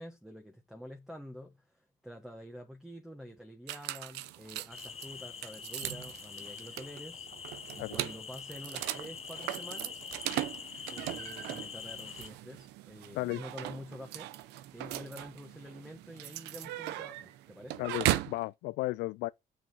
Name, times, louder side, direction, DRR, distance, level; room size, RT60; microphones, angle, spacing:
voice 1, 0.0-10.0 10.9-17.9, equal, 5° right, 1.3 m, -48 dB
sound 1, 3.7-18.4, right 15 dB, 90° right, 0.7 m, -38 dB
sound 2, 4.7-12.3, left 7 dB, 35° left, 1.1 m, -45 dB
voice 2, 17.8-19.3, left 20 dB, 90° left, 0.4 m, -34 dB
7.0 x 5.7 x 6.1 m
cardioid pair, 110°, 17 cm